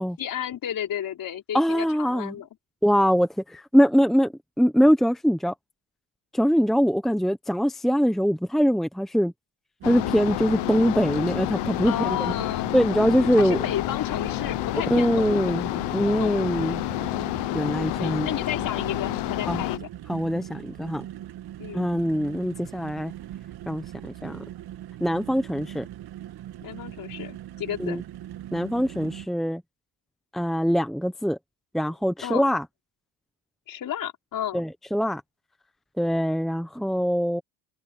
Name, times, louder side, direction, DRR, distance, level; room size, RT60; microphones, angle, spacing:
voice 1, 0.2-2.5 11.9-12.7 13.4-16.8 18.0-19.9 21.6-21.9 26.6-28.0 32.2-32.5 33.7-34.6, left 10 dB, 45° left, 5.8 m, -33 dB
voice 2, 1.5-2.3 2.8-4.3 4.6-5.5 6.3-9.3 9.8-12.3 12.7-13.6 14.9-16.8 17.5-18.3 19.5-19.6 20.1-21.0 21.7-23.1 23.7-23.8 24.2-24.4 25.0-25.9 27.8-28.0 28.5-29.6 30.3-31.4 31.7-32.6 34.5-35.2 36.0-37.4, equal, ahead, 1.1 m, -23 dB
sound 1, 9.8-19.8, left 19 dB, 60° left, 1.1 m, -29 dB
sound 2, 9.8-29.3, right 12 dB, 55° right, 2.3 m, -40 dB
supercardioid pair, 110°, 46 cm